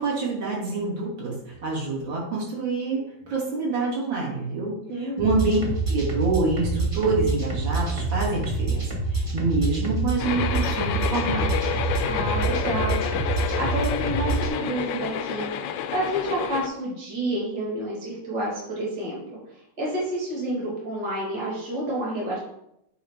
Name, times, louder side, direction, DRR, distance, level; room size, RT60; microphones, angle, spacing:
voice 1, 0.0-5.6 5.9-11.5, right 3 dB, 70° right, -3 dB, 2.6 m, -27 dB
voice 2, 4.9-5.2 12.0-13.0 13.6-15.5 15.9-19.2 19.5-22.4, right 1 dB, 55° right, -4 dB, 2.6 m, -29 dB
sound 1, 5.2-14.5, right 3 dB, 20° right, 0.9 m, -27 dB
sound 2, 10.2-16.7, left 8 dB, 75° left, 1.2 m, -29 dB
8.7 x 4.1 x 3.6 m, 0.80 s
omnidirectional pair, 2.2 m